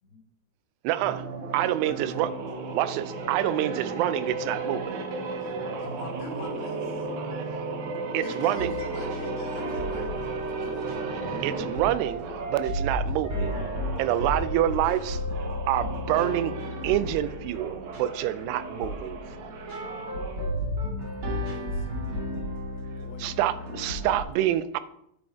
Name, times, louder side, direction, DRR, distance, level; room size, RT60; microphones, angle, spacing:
voice 1, 0.8-1.3 1.5-2.3 2.7-5.0 8.1-8.7 11.4-13.6 14.0-15.2 15.7-16.6 16.8-19.5 23.2-24.8, right 13 dB, 85° right, 2.6 m, -27 dB
sound 1, 1.0-12.7 13.3-20.5, right 3 dB, 70° right, 1.8 m, -35 dB
voice 2, 1.8-2.3 5.4-7.1 8.2-11.1, left 3 dB, 45° left, 2.4 m, -45 dB
sound 2, 8.6-24.2, left 1 dB, 40° right, 2.2 m, -34 dB
voice 3, 21.0-22.2 23.0-23.7 24.0-24.2, left 8 dB, 80° left, 2.5 m, -48 dB
10.5 x 5.2 x 4.5 m
omnidirectional pair, 4.7 m